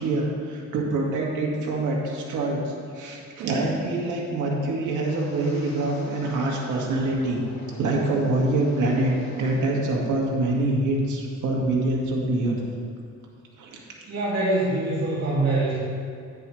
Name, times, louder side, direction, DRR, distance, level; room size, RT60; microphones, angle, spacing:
voice 1, 0.0-7.4 7.8-12.6 13.6-13.7, right 2 dB, 80° right, -2 dB, 2.1 m, -25 dB
Wind, 5.0-9.9 10.1-10.6 11.0-11.3, left 2 dB, 65° left, 1.9 m, -46 dB
voice 2, 14.0-15.7, right 2 dB, 60° right, -8 dB, 2.6 m, -24 dB
10.0 x 10.0 x 3.2 m, 2.3 s
cardioid pair, 90°, 30 cm